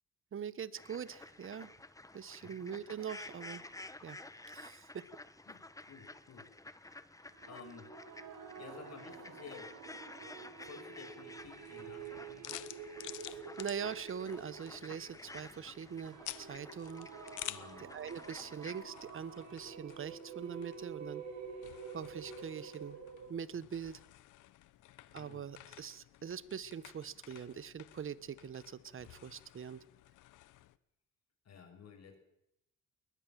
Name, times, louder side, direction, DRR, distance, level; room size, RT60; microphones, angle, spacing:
voice 1, 0.3-1.7 2.1-3.6 4.0-4.2 4.5-5.0 13.2-17.1 17.9-21.2 21.9-23.0 23.3-24.0 25.1-29.8, right 7 dB, 45° right, 18 dB, 1.2 m, -43 dB
sound 1, 0.8-18.8, left 2 dB, 10° left, 1.5 m, -52 dB
voice 2, 5.4-6.5 7.5-7.9 8.6-9.8 10.2-12.6 17.5-17.9 25.1-25.5 31.4-32.2, left 6 dB, 60° left, 6 dB, 6.5 m, -53 dB
sound 2, 7.3-23.3, right 6 dB, 70° right, 4.7 m, -49 dB
sound 3, 11.3-30.8, left 15 dB, 85° left, 1.0 m, -52 dB
21.5 x 19.5 x 7.6 m, 0.80 s
cardioid pair, 90°, 30 cm